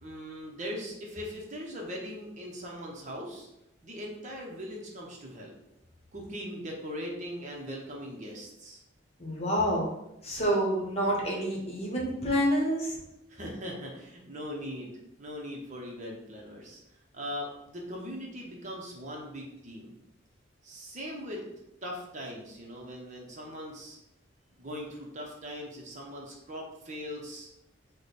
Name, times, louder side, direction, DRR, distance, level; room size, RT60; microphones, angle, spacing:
voice 1, 0.0-3.5 3.8-5.5 6.1-8.8 13.3-14.9 15.2-16.8 17.1-19.9 20.6-21.4 21.8-24.0 24.5-27.5, equal, 35° right, -1 dB, 0.8 m, -40 dB
voice 2, 9.2-9.9 10.2-13.0, equal, 30° left, -3 dB, 1.1 m, -28 dB
4.9 x 2.2 x 4.1 m, 0.84 s
head